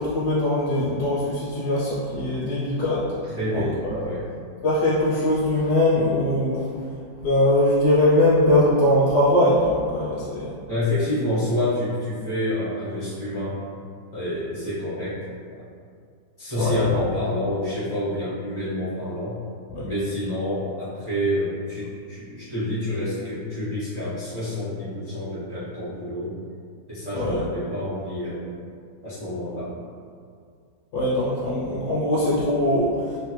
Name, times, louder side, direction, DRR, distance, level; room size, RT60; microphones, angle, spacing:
voice 1, 0.0-3.2 3.5-4.0 4.6-6.7 7.2-10.5 16.6-17.0 19.7-19.9 27.1-27.4 30.9-33.2, left 1 dB, 70° left, -8 dB, 1.1 m, -21 dB
voice 2, 3.3-4.2 10.7-13.5 14.1-15.6 16.4-19.4 19.8-26.3 26.9-28.5 29.0-29.7, left 1 dB, 25° right, -13 dB, 0.5 m, -28 dB
3.2 x 2.1 x 3.0 m, 2.2 s
omnidirectional pair, 2.0 m